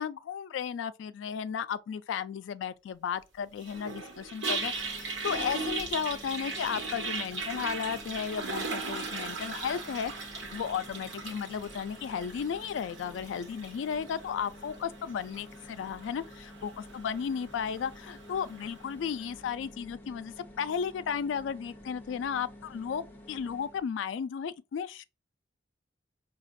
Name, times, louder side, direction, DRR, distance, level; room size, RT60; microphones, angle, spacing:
voice 1, 0.0-10.1 10.5-25.0, left 7 dB, 80° left, 0.3 m, -34 dB
Toilet flush, 3.6-18.8, right 3 dB, 80° right, 1.1 m, -38 dB
sound 1, 4.6-23.9, left 1 dB, 10° left, 0.7 m, -50 dB
4.9 x 2.3 x 2.6 m
head